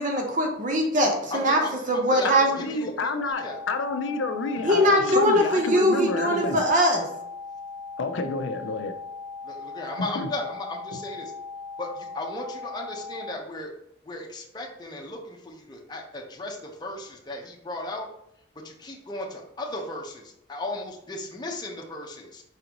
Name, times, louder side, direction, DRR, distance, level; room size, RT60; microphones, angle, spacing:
voice 1, 0.0-1.6 1.9-2.4 4.6-7.1, equal, 40° right, 2 dB, 0.7 m, -21 dB
voice 2, 1.3-3.6 9.4-11.3 11.8-13.7 14.0-18.1 18.6-22.4, left 2 dB, 20° left, -1 dB, 0.7 m, -36 dB
voice 3, 2.2-6.6 8.0-8.9 10.0-10.3 10.9-11.0, left 3 dB, 75° left, 7 dB, 0.5 m, -29 dB
sound 1, 3.3-13.3, left 4 dB, 60° right, 1.5 m, -39 dB
4.8 x 3.8 x 2.9 m, 0.78 s
head